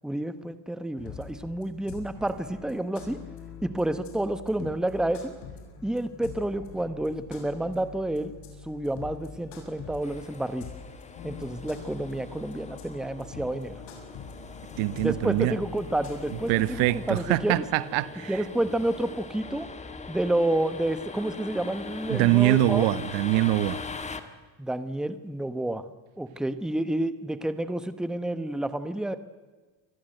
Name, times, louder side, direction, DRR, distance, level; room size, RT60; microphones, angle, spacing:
voice 1, 0.0-3.2 3.6-5.3 5.8-8.3 8.6-10.7 11.2-13.8 15.0-17.6 18.3-19.7 20.1-22.9 24.6-25.8 26.2-29.2, right 1 dB, ahead, 1.0 m, -29 dB
jazzy drum&base., 1.0-17.5, left 6 dB, 70° left, 7.3 m, -44 dB
sound 1, 10.0-24.2, left 4 dB, 15° left, 1.6 m, -42 dB
voice 2, 14.8-15.5 16.5-18.4 22.1-23.8, right 16 dB, 80° right, 1.2 m, -24 dB
28.0 x 22.5 x 7.9 m
cardioid pair, 155°, 46 cm